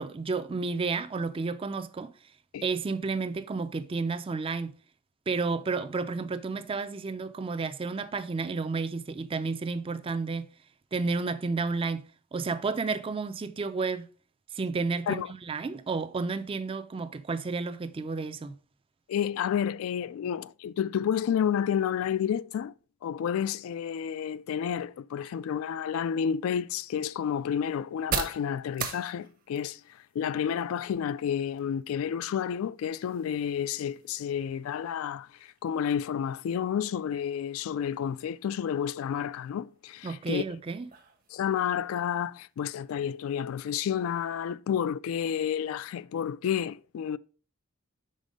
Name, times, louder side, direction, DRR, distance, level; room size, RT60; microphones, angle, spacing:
voice 1, 0.0-2.1 2.6-4.8 5.3-10.5 10.9-12.1 12.3-14.0 14.5-18.6 40.0-40.9, right 4 dB, 25° right, 0.4 m, -31 dB
voice 2, 19.1-22.7 23.0-29.8 30.1-40.4 41.3-47.2, left 8 dB, 80° left, 0.3 m, -30 dB
sound 1, 26.0-43.6, right 6 dB, 45° right, 0.8 m, -44 dB
5.3 x 4.1 x 5.0 m
head